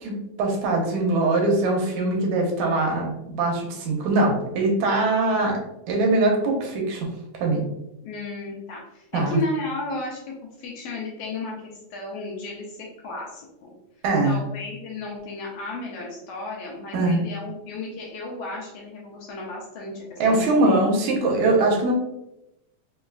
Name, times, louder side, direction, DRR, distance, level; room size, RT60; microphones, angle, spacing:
voice 1, 0.0-5.6 5.9-7.1 7.4-7.6 9.1-9.4 14.0-14.4 16.9-17.2 20.2-21.9, right 2 dB, 80° right, 0 dB, 2.0 m, -22 dB
voice 2, 8.0-13.7 14.2-21.0, left 2 dB, 80° left, -2 dB, 1.4 m, -34 dB
4.9 x 2.3 x 2.2 m, 0.88 s
omnidirectional pair, 3.5 m